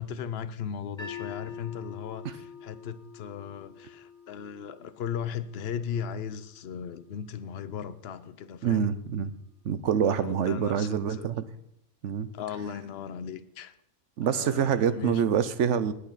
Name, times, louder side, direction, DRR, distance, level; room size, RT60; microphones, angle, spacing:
voice 1, 0.0-8.9 10.1-11.3 12.3-13.7 14.2-15.2, left 8 dB, 55° left, 13 dB, 0.8 m, -37 dB
sound 1, 1.0-7.1, left 6 dB, 20° left, 2.2 m, -46 dB
voice 2, 8.6-9.3 9.6-11.4 12.0-12.3 14.2-15.9, right 8 dB, 65° right, 13 dB, 1.0 m, -26 dB
19.0 x 8.5 x 4.0 m, 0.74 s
omnidirectional pair, 1.4 m